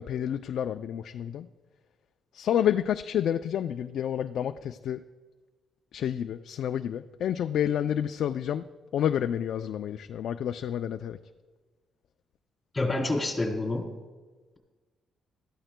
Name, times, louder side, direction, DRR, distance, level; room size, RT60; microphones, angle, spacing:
voice 1, 0.0-1.5 2.3-5.0 5.9-8.6 8.9-11.2, left 10 dB, 70° left, 8 dB, 0.3 m, -29 dB
voice 2, 12.7-13.9, left 2 dB, 20° left, 1 dB, 3.3 m, -28 dB
19.0 x 13.5 x 2.2 m, 1.3 s
cardioid pair, 90°, 0 cm